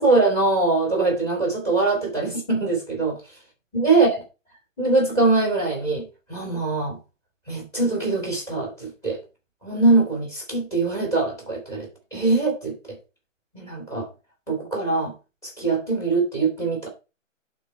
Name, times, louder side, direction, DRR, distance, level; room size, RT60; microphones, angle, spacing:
voice 1, 0.0-3.2 3.7-4.1 4.8-7.0 7.5-9.2 9.6-13.0 13.5-14.1 14.5-15.1 15.4-16.9, right 3 dB, 5° left, 0 dB, 2.3 m, -22 dB
11.0 x 4.0 x 4.4 m, 0.30 s
hypercardioid pair, 160°, 38 cm